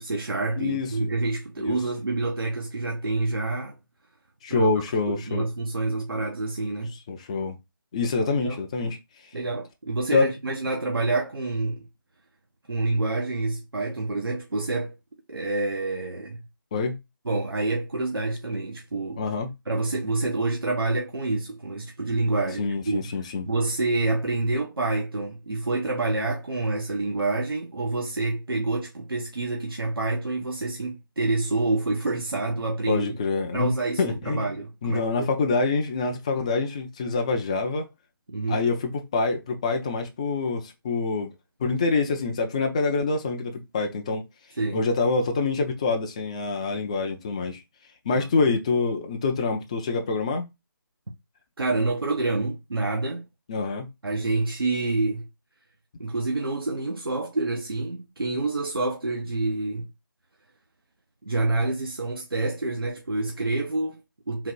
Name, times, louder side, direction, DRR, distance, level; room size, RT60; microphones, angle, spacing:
voice 1, 0.0-3.8 4.5-4.7 5.1-6.9 8.2-8.6 9.3-11.9 12.7-14.9 15.3-16.4 17.2-19.2 19.7-23.1 23.4-33.2 33.5-35.3 38.3-38.6 44.6-44.9 48.1-48.5 51.6-53.2 54.0-55.3 56.0-59.9 61.2-64.5, right 2 dB, 85° right, 0.9 m, -27 dB
voice 2, 0.6-1.1 1.7-1.8 4.4-5.5 6.9-7.6 7.9-9.0 10.1-10.3 16.7-17.0 19.2-19.5 22.6-23.5 32.9-33.7 34.0-34.5 34.8-37.9 38.5-41.3 41.6-44.2 44.7-47.6 48.1-50.5 53.5-53.9, left 4 dB, 15° left, 0.4 m, -26 dB
3.9 x 2.4 x 4.4 m
figure-of-eight pair, 160°, 12 cm